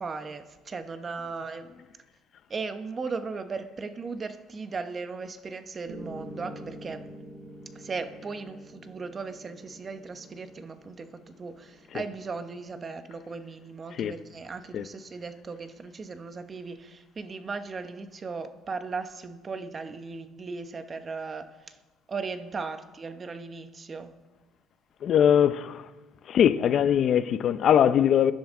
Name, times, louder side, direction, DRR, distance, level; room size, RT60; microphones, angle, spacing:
voice 1, 0.0-1.8 2.5-7.1 7.7-21.8 22.1-24.1, right 4 dB, 30° right, 1.0 m, -37 dB
Piano, 5.9-13.9, right 1 dB, 75° right, 5.4 m, -47 dB
voice 2, 25.0-25.9 26.3-28.3, left 9 dB, 50° left, 0.6 m, -21 dB
22.5 x 10.5 x 3.7 m
cardioid pair, 110°, 0 cm